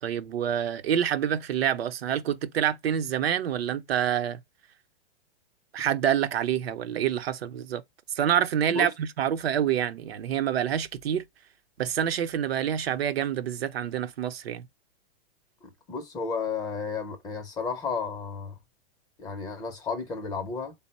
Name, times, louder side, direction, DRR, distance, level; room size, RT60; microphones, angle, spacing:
voice 1, 0.0-4.4 5.7-7.8 8.1-11.2 11.8-14.7, right 9 dB, 80° right, 0.7 m, -27 dB
voice 2, 15.6-18.6 19.2-20.7, left 5 dB, 15° left, 0.4 m, -33 dB
3.6 x 2.1 x 4.0 m
hypercardioid pair, 150°, 30 cm